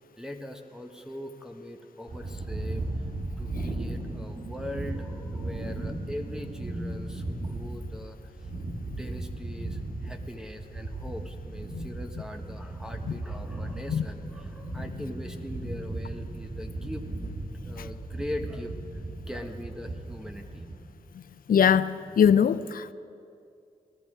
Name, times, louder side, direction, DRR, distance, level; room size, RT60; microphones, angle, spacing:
voice 1, 0.2-3.1 3.4-8.3 8.8-17.0 17.6-19.0 19.3-20.7, left 1 dB, 5° right, 1.3 m, -41 dB
sound 1, 2.1-20.8, right 2 dB, 55° right, 2.1 m, -36 dB
voice 2, 21.5-22.9, left 8 dB, 65° left, 0.5 m, -21 dB
18.5 x 12.0 x 5.0 m
supercardioid pair, 40°, 16 cm